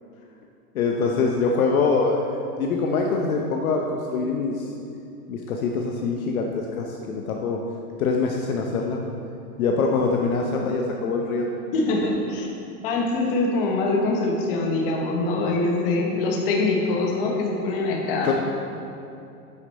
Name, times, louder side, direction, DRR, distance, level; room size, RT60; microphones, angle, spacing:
voice 1, 0.7-4.7 5.3-7.6 8.0-9.0 9.6-11.5 18.2-18.3, left 4 dB, 60° left, 1 dB, 0.9 m, -24 dB
voice 2, 10.6-11.1 11.7-12.5 12.8-18.3, left 2 dB, 35° left, 0 dB, 1.2 m, -24 dB
9.3 x 6.3 x 4.2 m, 2.7 s
hypercardioid pair, 160°, 48 cm